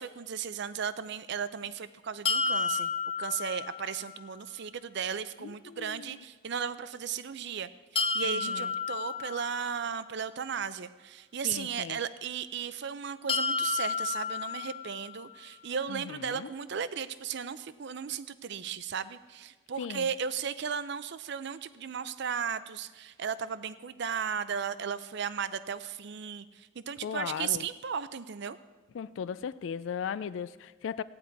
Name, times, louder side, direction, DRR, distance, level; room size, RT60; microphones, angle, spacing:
voice 1, 0.0-2.9 3.2-28.6, right 7 dB, 60° right, 14 dB, 0.5 m, -35 dB
sound 1, 2.2-4.2 7.9-10.0 13.3-15.3, left 5 dB, 25° left, 0.7 m, -32 dB
voice 2, 5.4-6.2 8.2-8.7 11.4-12.0 15.9-16.5 19.8-20.1 27.0-27.7 28.9-31.0, left 7 dB, 65° left, 16 dB, 0.3 m, -37 dB
15.5 x 9.7 x 4.6 m, 1.3 s
head